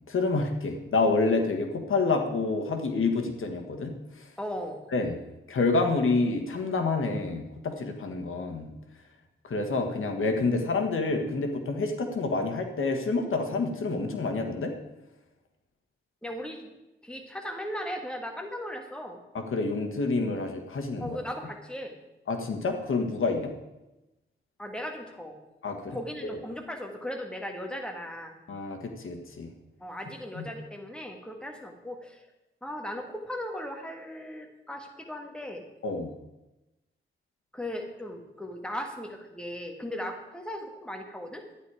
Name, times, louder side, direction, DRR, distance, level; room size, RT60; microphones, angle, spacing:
voice 1, 0.1-3.9 4.9-5.2 5.5-8.7 9.4-14.7 19.5-21.2 22.3-23.5 25.6-26.0 26.2-26.4 28.5-29.5 30.3-30.5 35.8-36.1, left 3 dB, 75° left, 4 dB, 1.5 m, -28 dB
voice 2, 4.4-4.8 16.2-16.7 17.0-19.2 21.0-21.9 24.6-25.4 25.9-28.3 29.8-32.2 32.6-35.6 37.5-41.4, equal, 5° left, 3 dB, 1.7 m, -37 dB
12.0 x 9.9 x 4.8 m, 0.98 s
wide cardioid pair, 110°, 21 cm